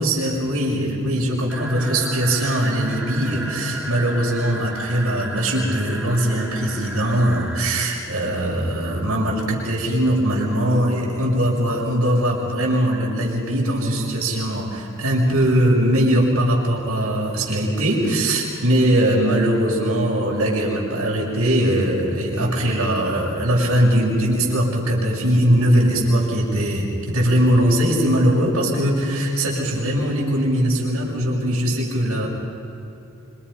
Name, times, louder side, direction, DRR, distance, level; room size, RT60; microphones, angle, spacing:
voice 1, 0.0-32.3, right 1 dB, 90° right, -4 dB, 6.2 m, -20 dB
sound 1, 1.5-7.9, right 1 dB, 5° right, 3.8 m, -34 dB
27.5 x 25.5 x 5.6 m, 2.9 s
head